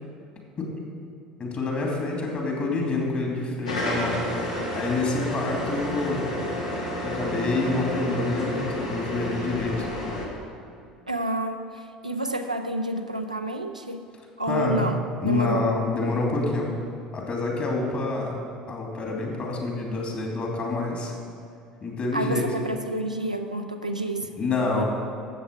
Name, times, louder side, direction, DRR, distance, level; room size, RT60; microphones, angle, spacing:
voice 1, 1.4-6.4 7.0-9.9 14.5-14.8 15.2-16.7 17.1-21.1 21.8-22.4 24.4-24.9, left 3 dB, 35° left, -1 dB, 2.7 m, -27 dB
sound 1, 3.6-10.3, left 1 dB, 75° left, 1.5 m, -30 dB
voice 2, 11.1-14.0 14.4-15.7 22.1-24.3 24.7-24.8, right 1 dB, 90° right, 5 dB, 0.5 m, -29 dB
13.0 x 8.0 x 4.6 m, 2.5 s
figure-of-eight pair, 65°, 4 cm